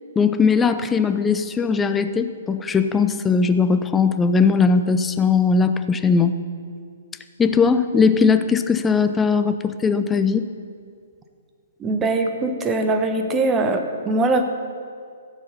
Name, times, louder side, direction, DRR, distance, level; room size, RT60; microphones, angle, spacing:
voice 1, 0.2-6.3 7.4-10.5, left 5 dB, 10° left, 10 dB, 0.6 m, -19 dB
voice 2, 11.8-14.4, right 2 dB, 15° right, 5 dB, 1.0 m, -21 dB
15.5 x 7.2 x 5.5 m, 2.2 s
figure-of-eight pair, 125°, 0 cm